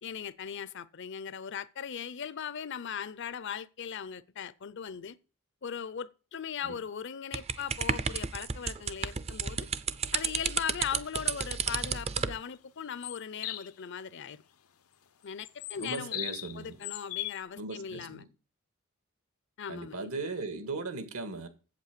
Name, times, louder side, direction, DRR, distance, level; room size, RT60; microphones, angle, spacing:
voice 1, 0.0-5.2 5.6-9.7 10.1-14.4 15.2-16.2 16.5-18.3 19.6-20.1, left 7 dB, 55° left, 0.5 m, -39 dB
sound 1, 7.3-12.4, right 6 dB, 30° right, 0.5 m, -32 dB
sound 2, 13.0-13.7 15.4-16.6 16.8-17.4, left 14 dB, 90° left, 0.8 m, -38 dB
voice 2, 15.7-16.8 17.6-18.2 19.7-21.5, right 3 dB, 80° right, 1.9 m, -38 dB
8.2 x 7.8 x 6.7 m
head